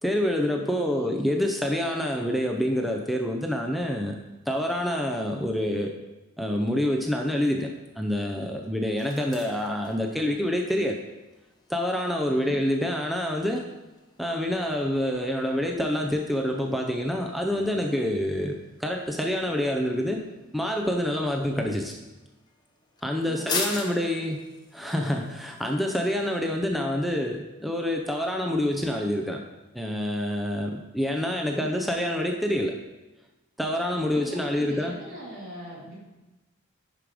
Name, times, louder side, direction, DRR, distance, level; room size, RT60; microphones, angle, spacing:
voice 1, 0.0-4.2 4.5-5.9 6.4-7.7 8.0-11.0 11.7-13.7 14.2-20.2 20.5-21.9 23.0-24.4 24.7-29.4 29.7-32.7 33.6-34.9, left 1 dB, ahead, 2 dB, 0.5 m, -27 dB
voice 2, 0.7-1.1 12.2-12.6 23.2-24.3 31.5-31.7 34.1-35.9, right 1 dB, 65° right, -6 dB, 3.5 m, -42 dB
sound 1, 7.0-26.6, left 3 dB, 20° left, 1.2 m, -43 dB
11.0 x 5.1 x 4.9 m, 1.1 s
head